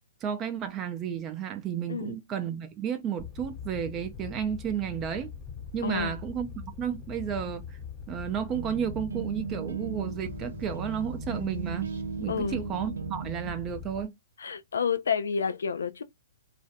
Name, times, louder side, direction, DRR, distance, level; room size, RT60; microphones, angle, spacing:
voice 1, 0.2-5.3 5.7-7.8 8.1-11.9 12.2-14.1, right 8 dB, 25° right, 0.4 m, -32 dB
Fire, 3.2-14.0, left 6 dB, 15° left, 0.7 m, -42 dB
voice 2, 5.8-6.1 12.3-12.6 14.4-16.0, left 6 dB, 80° left, 0.4 m, -29 dB
sound 1, 8.3-13.5, right 7 dB, 90° right, 0.3 m, -37 dB
sound 2, 10.2-12.6, right 2 dB, 70° right, 0.8 m, -50 dB
2.4 x 2.1 x 2.6 m
hypercardioid pair, 135°, 0 cm